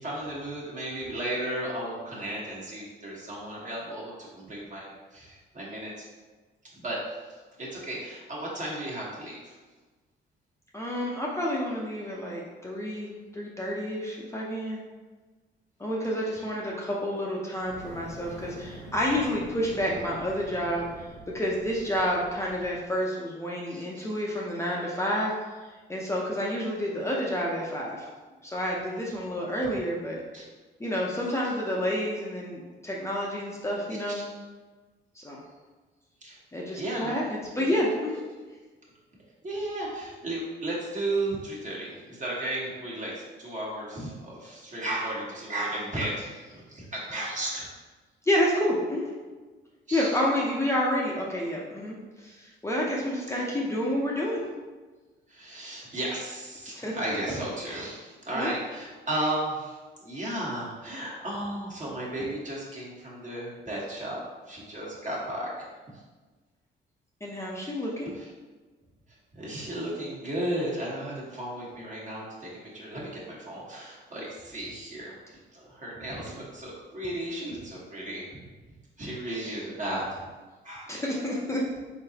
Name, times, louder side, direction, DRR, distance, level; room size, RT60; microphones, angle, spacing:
voice 1, 0.0-6.0 6.8-9.5 16.2-16.4 23.7-24.1 30.3-30.4 34.1-34.2 36.2-36.4 36.8-37.2 37.7-37.8 39.4-47.7 49.9-50.2 53.3-53.6 55.3-64.2 64.5-65.5 68.1-68.3 69.3-75.1 75.5-78.4 79.0-80.2 80.6-80.9, right 1 dB, 40° right, -5 dB, 1.4 m, -34 dB
voice 2, 10.7-14.8 15.8-20.9 21.3-25.6 25.9-28.1 28.4-30.2 30.8-34.2 35.2-35.4 36.5-38.2 48.2-49.1 49.9-54.4 56.7-56.9 58.3-58.5 67.2-68.1 80.9-81.6, equal, 15° left, -4 dB, 0.6 m, -29 dB
Fire, 17.6-22.9, right 1 dB, 65° right, 0.8 m, -45 dB
3.9 x 3.8 x 2.8 m, 1.3 s
cardioid pair, 90°, 20 cm